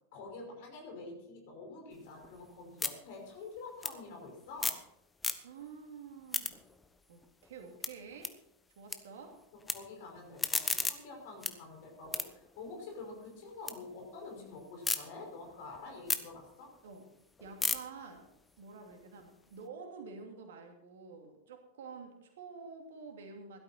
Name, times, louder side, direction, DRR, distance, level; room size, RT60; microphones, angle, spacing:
voice 1, 0.1-4.8 9.5-16.7, left 3 dB, 50° left, 1 dB, 5.6 m, -47 dB
sound 1, 1.9-4.9 5.1-5.8 6.1-9.0 9.3-9.7 10.2-13.8 14.1-15.0 15.4-19.6, left 4 dB, 10° left, 1.1 m, -38 dB
voice 2, 5.4-6.5 7.1-8.3 8.8-9.4 16.8-17.1 17.4-18.3 18.6-23.6, right 5 dB, 60° right, 4 dB, 2.7 m, -49 dB
16.5 x 12.5 x 4.4 m, 0.82 s
figure-of-eight pair, 90°, 0 cm